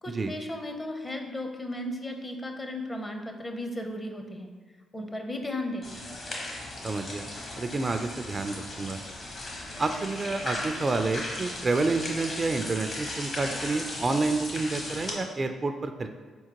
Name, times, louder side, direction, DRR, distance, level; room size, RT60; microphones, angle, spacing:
voice 1, 0.0-4.5 4.9-5.9, left 1 dB, 30° left, 4 dB, 0.6 m, -35 dB
sound 1, 5.8-15.1, left 1 dB, 50° left, 1.0 m, -37 dB
voice 2, 6.8-7.3 7.6-9.0 9.8-16.1, right 3 dB, 40° right, 7 dB, 0.3 m, -29 dB
4.3 x 3.7 x 2.9 m, 1.5 s
hypercardioid pair, 45°, 0 cm